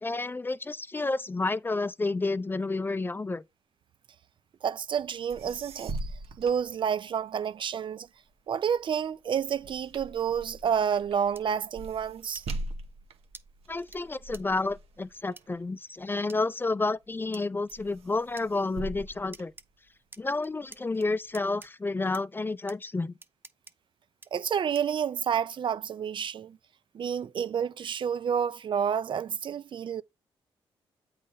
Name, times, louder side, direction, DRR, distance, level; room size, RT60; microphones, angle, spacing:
voice 1, 0.0-3.4 13.7-19.5 20.2-23.1, left 3 dB, 20° left, 0.4 m, -30 dB
voice 2, 4.6-6.1 6.4-8.1 8.5-12.5 24.3-26.6 26.9-30.0, right 8 dB, 55° right, 0.5 m, -29 dB
sound 1, 5.3-7.4 7.9-16.5 17.0-17.4 17.7-20.2 20.7-21.7, right 2 dB, 85° right, 0.9 m, -42 dB
sound 2, 11.4-11.5 12.3-12.5 13.3-13.4 13.9-14.0 14.3-14.4 15.4-15.5 16.3-16.4 17.3-17.5 18.4-18.5 19.3-19.7 20.1-20.8 21.3-21.7 22.1-22.2 22.7-22.8 23.2-23.7 24.2-24.3 24.7-25.0, right 3 dB, 20° right, 0.7 m, -48 dB
8.2 x 3.2 x 5.5 m
cardioid pair, 75°, 10 cm